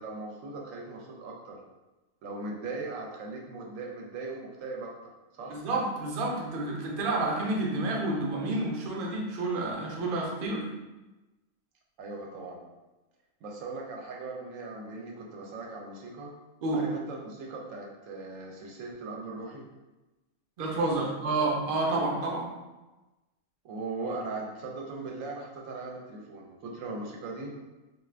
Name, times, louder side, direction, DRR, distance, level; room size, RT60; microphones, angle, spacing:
voice 1, 0.0-1.6 2.2-5.6 12.0-12.6 13.4-16.3 16.7-19.7 21.0-21.5 23.6-27.5, right 3 dB, 75° right, -1 dB, 0.9 m, -39 dB
voice 2, 5.5-10.6 16.6-16.8 20.6-22.5, right 2 dB, 55° right, -2 dB, 0.6 m, -29 dB
2.4 x 2.4 x 3.2 m, 1.1 s
omnidirectional pair, 1.4 m